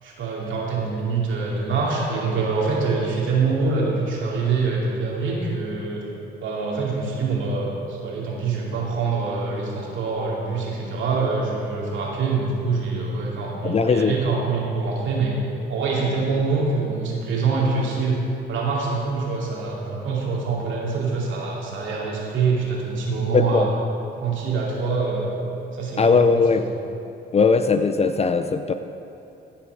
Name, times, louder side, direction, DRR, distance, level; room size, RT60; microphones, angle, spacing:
voice 1, 0.0-6.0 6.4-15.4 15.7-18.2 18.5-23.7 24.1-25.4 25.7-26.6, right 4 dB, 75° right, -3 dB, 2.5 m, -25 dB
voice 2, 13.6-14.1 23.3-23.7 26.0-26.6 27.3-28.7, left 5 dB, 30° left, 9 dB, 0.4 m, -19 dB
15.5 x 5.8 x 4.9 m, 2.8 s
cardioid pair, 90°, 20 cm